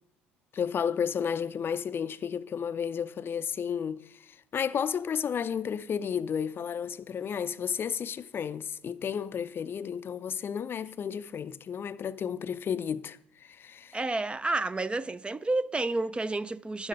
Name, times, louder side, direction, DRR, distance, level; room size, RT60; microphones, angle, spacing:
voice 1, 0.5-14.0, left 7 dB, 40° left, 0.5 m, -32 dB
voice 2, 13.9-16.9, right 2 dB, 20° right, 0.5 m, -30 dB
10.5 x 8.8 x 5.4 m
hypercardioid pair, 60°, 6 cm